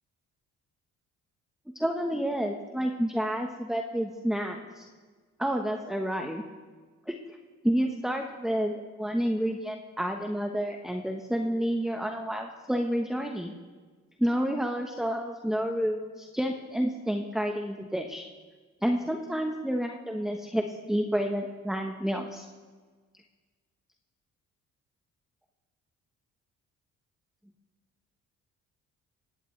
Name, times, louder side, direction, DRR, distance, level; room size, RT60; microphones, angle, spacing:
voice 1, 1.7-4.9 5.4-6.4 7.1-7.2 7.6-8.7 9.0-13.5 14.2-18.3 18.8-22.5, equal, ahead, 3 dB, 1.1 m, -29 dB
18.5 x 17.0 x 3.3 m, 1.5 s
cardioid pair, 85°, 30 cm